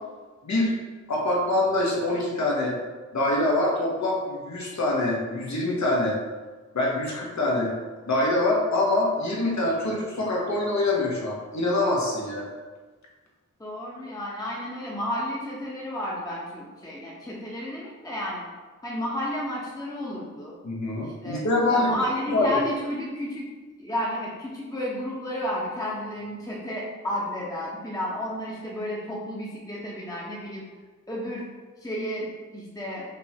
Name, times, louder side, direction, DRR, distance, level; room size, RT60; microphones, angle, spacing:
voice 1, 0.4-0.7 1.1-2.8 3.1-6.2 6.7-7.7 8.1-12.5 20.6-22.0 22.3-22.5, left 2 dB, 60° left, -3 dB, 1.2 m, -25 dB
voice 2, 13.6-18.4 18.8-20.6 21.0-21.4 21.7-23.5 23.8-30.6 31.1-31.4 31.8-33.0, left 1 dB, 10° left, -6 dB, 0.9 m, -32 dB
5.3 x 2.8 x 2.8 m, 1.4 s
cardioid pair, 50°, 31 cm